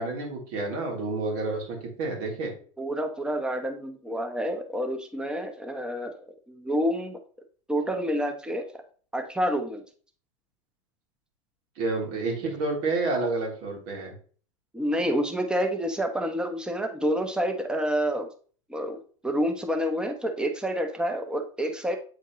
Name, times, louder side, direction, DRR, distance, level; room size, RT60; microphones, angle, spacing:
voice 1, 0.0-2.5 11.8-14.1, right 3 dB, 60° right, 0 dB, 3.0 m, -29 dB
voice 2, 2.8-6.2 6.5-7.2 7.7-8.6 9.1-9.8 14.7-18.3 18.7-22.0, equal, 5° right, 4 dB, 1.1 m, -28 dB
8.2 x 4.2 x 3.1 m, 0.43 s
hypercardioid pair, 105°, 17 cm